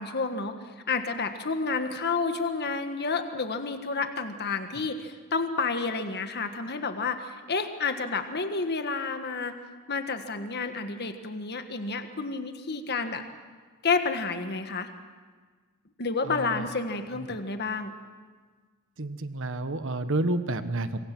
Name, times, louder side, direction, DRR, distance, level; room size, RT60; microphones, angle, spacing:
voice 1, 0.0-9.6 9.9-13.2 13.8-14.9 16.0-17.9, left 4 dB, 50° left, 7 dB, 1.6 m, -30 dB
voice 2, 16.3-16.7 19.0-21.0, right 2 dB, 60° right, 10 dB, 1.3 m, -30 dB
26.0 x 23.5 x 6.1 m, 1.5 s
head